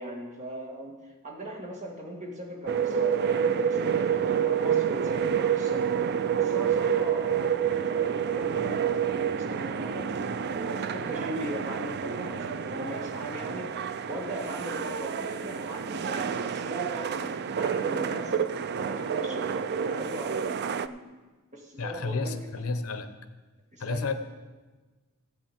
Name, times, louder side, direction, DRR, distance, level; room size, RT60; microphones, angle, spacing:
voice 1, 0.0-5.9 6.4-10.1 10.5-13.7 14.1-18.3 18.8-21.0 21.5-22.3 23.7-24.1, right 1 dB, 35° right, 0 dB, 2.0 m, -39 dB
sound 1, 2.7-20.9, right 7 dB, 50° right, 0.4 m, -28 dB
voice 2, 21.8-23.1 23.8-24.1, left 3 dB, 80° left, 9 dB, 0.9 m, -31 dB
16.0 x 8.3 x 4.4 m, 1.3 s
head